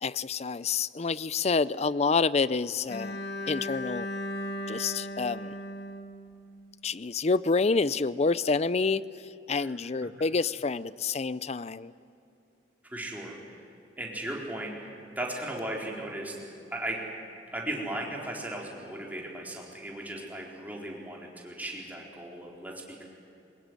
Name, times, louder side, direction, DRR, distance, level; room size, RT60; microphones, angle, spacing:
voice 1, 0.0-3.2 3.5-4.1 4.7-5.5 6.8-9.0 9.5-11.9, left 4 dB, 35° left, 17 dB, 0.5 m, -28 dB
Bowed string instrument, 2.9-6.9, left 1 dB, 60° left, 1.7 m, -37 dB
voice 2, 12.9-13.6 14.0-17.0 17.5-23.0, right 1 dB, 10° right, -2 dB, 4.1 m, -37 dB
23.0 x 20.5 x 10.0 m, 2.7 s
head